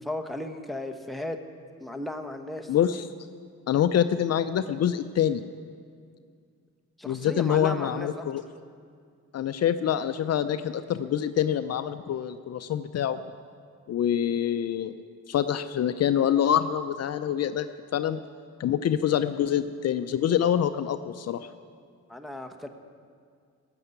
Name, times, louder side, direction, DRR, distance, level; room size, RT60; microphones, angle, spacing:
voice 1, 0.0-1.4 1.8-2.7 7.0-8.2 22.1-22.7, left 1 dB, ahead, 4 dB, 1.2 m, -35 dB
voice 2, 2.7-3.1 3.7-5.4 7.0-8.4 9.3-13.2 13.9-14.9 15.3-17.7 17.9-18.2 18.6-21.5, left 9 dB, 55° left, 11 dB, 0.6 m, -25 dB
17.0 x 6.9 x 9.5 m, 2.2 s
cardioid pair, 90°, 30 cm